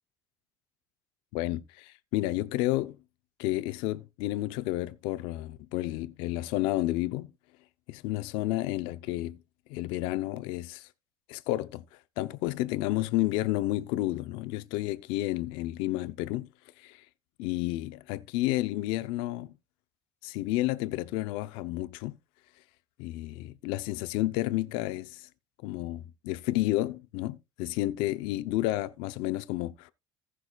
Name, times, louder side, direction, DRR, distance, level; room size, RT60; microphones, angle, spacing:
voice 1, 1.3-3.0 3.4-7.3 7.9-9.4 9.7-10.9 11.3-11.8 12.2-16.5 16.8-17.0 17.4-19.5 20.2-22.2 23.0-25.3 25.6-29.9, left 17 dB, 85° left, 0.7 m, -31 dB
17.5 x 6.1 x 2.3 m
cardioid pair, 160°, 8 cm